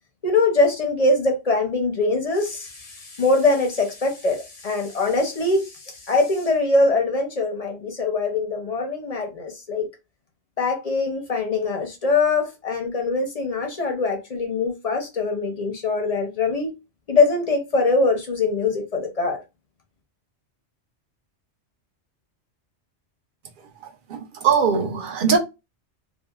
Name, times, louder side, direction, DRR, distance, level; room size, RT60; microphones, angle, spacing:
voice 1, 0.2-9.9 10.6-16.7 17.1-19.4, left 3 dB, 45° left, 0.5 m, -22 dB
voice 2, 24.1-25.4, right 6 dB, 55° right, 0.6 m, -20 dB
2.7 x 2.2 x 2.2 m
omnidirectional pair, 1.2 m